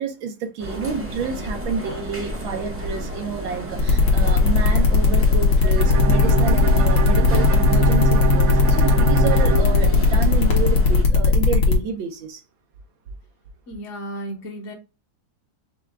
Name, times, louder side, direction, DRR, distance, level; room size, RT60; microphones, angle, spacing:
voice 1, 0.0-12.4, right 5 dB, 80° right, 1.6 m, -29 dB
sound 1, 0.6-11.0, right 1 dB, 20° right, 0.3 m, -32 dB
sound 2, 3.8-11.7, left 4 dB, 75° left, 1.9 m, -18 dB
Bowed string instrument, 5.8-10.6, right 4 dB, 60° right, 1.0 m, -24 dB
voice 2, 13.7-14.7, right 1 dB, 50° left, 1.0 m, -34 dB
6.1 x 2.3 x 3.5 m
omnidirectional pair, 2.1 m